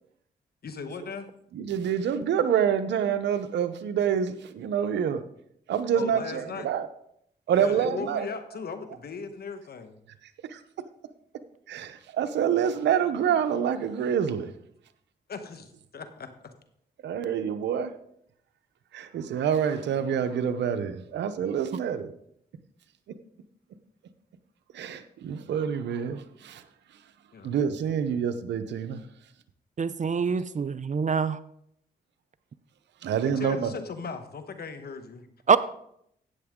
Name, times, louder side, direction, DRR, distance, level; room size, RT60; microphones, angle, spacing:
voice 1, 0.6-1.3 5.9-6.7 7.5-9.9 15.3-16.3 27.3-27.5 27.9-28.0 33.4-35.3, left 4 dB, 60° left, 1.3 m, -37 dB
voice 2, 1.5-5.2 5.7-6.9 7.5-8.3 11.7-14.5 17.0-17.9 18.9-22.1 24.7-26.6 27.4-29.0 33.0-33.7, right 8 dB, 90° right, 0.8 m, -27 dB
voice 3, 29.8-31.4 35.5-35.6, right 6 dB, 45° right, 0.6 m, -24 dB
13.0 x 8.8 x 3.7 m
cardioid pair, 65°, 18 cm